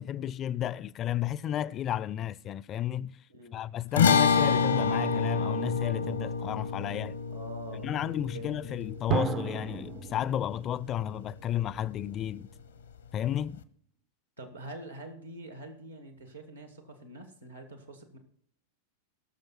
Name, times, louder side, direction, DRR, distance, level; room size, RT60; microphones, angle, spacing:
voice 1, 0.0-3.2 3.5-7.2 7.8-12.5 13.1-13.6, left 11 dB, 30° left, 0.4 m, -32 dB
sound 1, 4.0-10.5, left 5 dB, 70° left, 0.8 m, -28 dB
voice 2, 7.3-7.9 8.3-8.5 14.4-18.2, right 2 dB, 85° right, 1.8 m, -45 dB
Drum, 9.1-11.8, right 10 dB, 30° right, 0.4 m, -34 dB
18.0 x 6.6 x 4.5 m
figure-of-eight pair, 90°, 0 cm